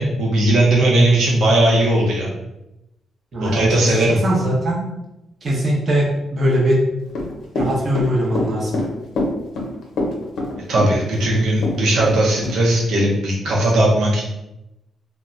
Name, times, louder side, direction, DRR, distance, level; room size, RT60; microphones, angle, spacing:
voice 1, 0.0-2.3 3.4-4.2 10.7-14.2, right 1 dB, 80° right, -3 dB, 0.6 m, -17 dB
voice 2, 3.3-4.8 5.4-6.8 7.6-8.7, equal, 35° right, -4 dB, 0.7 m, -20 dB
Run / Walk footsteps, 7.1-12.2 12.4-12.6, left 2 dB, 75° left, 0.6 m, -24 dB
2.1 x 2.1 x 3.7 m, 0.90 s
cardioid pair, 150°, 0 cm